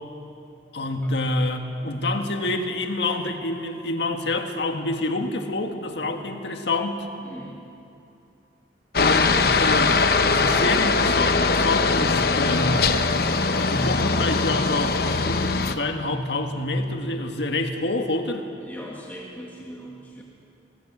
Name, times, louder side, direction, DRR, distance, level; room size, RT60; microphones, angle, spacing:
voice 1, 0.7-7.1 9.0-12.8 13.5-18.4, left 2 dB, 75° left, 4 dB, 1.8 m, -27 dB
voice 2, 7.2-7.6 18.6-20.2, equal, 10° left, -3 dB, 1.7 m, -40 dB
Aircraft, 8.9-15.7, left 4 dB, 55° left, 0.8 m, -21 dB
22.5 x 18.0 x 7.4 m, 2.7 s
head